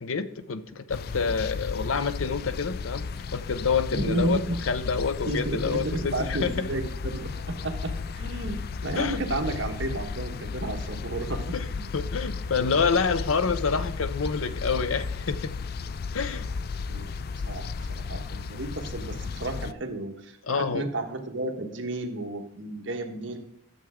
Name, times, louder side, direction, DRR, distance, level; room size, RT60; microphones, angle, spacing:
voice 1, 0.0-3.0 3.3-4.4 4.7-6.7 9.0-9.2 11.5-11.6 11.9-15.5 16.1-16.5 20.5-20.8, left 5 dB, 80° left, 12 dB, 0.7 m, -27 dB
sound 1, 0.9-19.7, left 4 dB, 45° left, 0.3 m, -34 dB
voice 2, 3.9-4.6 5.3-11.9 16.9-17.2 17.5-17.6 17.9-23.4, right 2 dB, 60° right, 3 dB, 1.3 m, -32 dB
12.0 x 7.2 x 3.7 m, 0.74 s
head